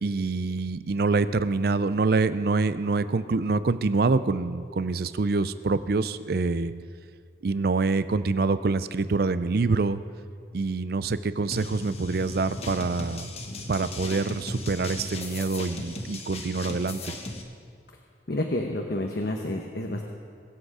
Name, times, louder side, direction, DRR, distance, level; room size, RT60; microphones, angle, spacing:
voice 1, 0.0-6.7 7.4-10.0 10.5-13.3 13.7-17.1, right 3 dB, 55° right, 14 dB, 0.5 m, -26 dB
sound 1, 11.5-17.4, left 2 dB, 35° left, 1.1 m, -37 dB
voice 2, 18.3-20.0, left 1 dB, 60° left, 2 dB, 0.9 m, -29 dB
22.5 x 8.0 x 4.9 m, 2.3 s
head